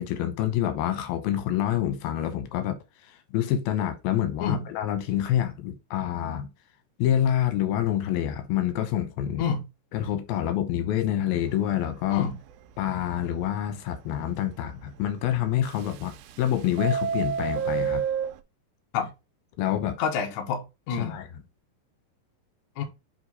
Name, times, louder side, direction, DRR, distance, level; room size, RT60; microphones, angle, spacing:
voice 1, 0.0-2.8 3.0-6.5 7.0-9.4 9.9-12.3 12.8-18.0 19.6-20.0 21.0-21.3, left 11 dB, 85° left, 2.8 m, -27 dB
Subway metro underground, 11.4-11.7 12.1-12.2 12.5-12.6 13.1-13.2 15.7-16.4 16.7-18.4, right 7 dB, 85° right, 2.4 m, -28 dB
voice 2, 20.0-21.2 22.8-22.9, left 6 dB, 60° left, 2.3 m, -28 dB
7.8 x 3.3 x 4.0 m
omnidirectional pair, 4.2 m